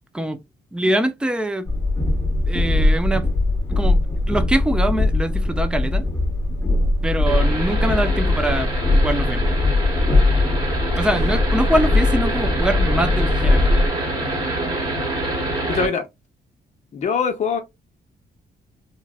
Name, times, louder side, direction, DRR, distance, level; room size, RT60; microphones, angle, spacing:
voice 1, 0.7-1.7 2.4-3.3 3.7-6.1 7.0-8.7 9.0-9.5 10.9-13.8, right 1 dB, 5° right, 0.3 m, -23 dB
Train, 1.7-13.9, left 2 dB, 15° left, 1.0 m, -20 dB
sound 1, 7.3-15.9, right 1 dB, 25° right, 1.1 m, -26 dB
voice 2, 15.7-16.0 16.9-17.6, left 5 dB, 40° left, 0.8 m, -22 dB
3.9 x 2.1 x 2.3 m
wide cardioid pair, 180°, 18 cm